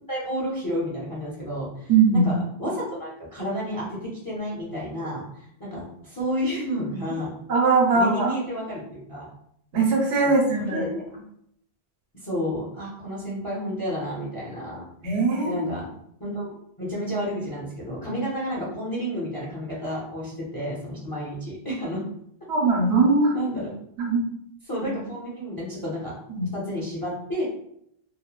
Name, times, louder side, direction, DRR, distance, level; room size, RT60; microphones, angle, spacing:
voice 1, 0.1-7.3 7.9-9.3 10.2-11.2 12.1-14.9 15.4-15.9 16.2-22.0 23.3-23.7 24.7-26.2 26.5-27.4, equal, 25° left, -6 dB, 0.5 m, -31 dB
voice 2, 1.9-2.3 7.5-8.3 9.7-10.8 15.0-15.6 22.5-23.3 24.0-24.2 26.3-26.4, right 4 dB, 85° right, -2 dB, 1.0 m, -20 dB
2.9 x 2.1 x 2.2 m, 0.72 s
omnidirectional pair, 1.1 m